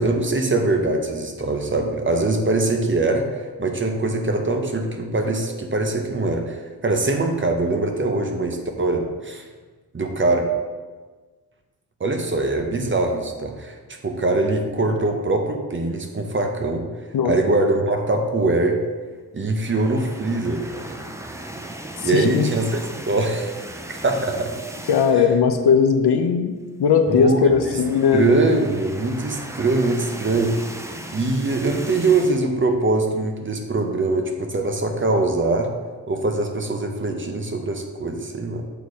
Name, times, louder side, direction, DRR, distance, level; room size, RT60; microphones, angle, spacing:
voice 1, 0.0-9.4 9.9-10.5 12.0-13.8 14.0-18.8 19.3-20.8 22.0-22.8 23.1-23.5 23.9-24.5 27.1-27.8 28.1-30.6 31.1-35.7 36.1-38.6, right 2 dB, 30° right, 4 dB, 0.8 m, -22 dB
sound 1, 19.6-25.4 25.8-25.9 26.2-26.3 27.4-32.4, right 1 dB, 10° right, 0.4 m, -37 dB
voice 2, 22.0-22.5 24.9-26.5 26.8-28.3, left 6 dB, 80° left, 7 dB, 0.7 m, -18 dB
6.9 x 4.2 x 4.7 m, 1.4 s
wide cardioid pair, 120°, 39 cm